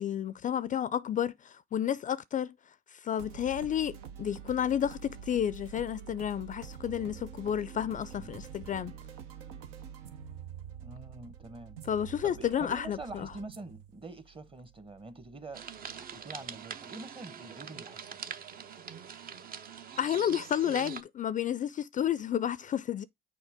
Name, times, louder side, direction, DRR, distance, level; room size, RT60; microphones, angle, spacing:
voice 1, 0.0-2.5 2.9-8.9 11.9-13.3 20.0-23.0, left 9 dB, 40° left, 0.4 m, -31 dB
sound 1, 3.2-16.6, right 8 dB, 85° right, 0.8 m, -47 dB
voice 2, 10.8-11.8 12.2-18.2, right 3 dB, 25° right, 1.0 m, -46 dB
sound 2, 15.5-21.0, right 7 dB, 45° right, 0.7 m, -43 dB
6.4 x 4.4 x 3.5 m
supercardioid pair, 75°, 21 cm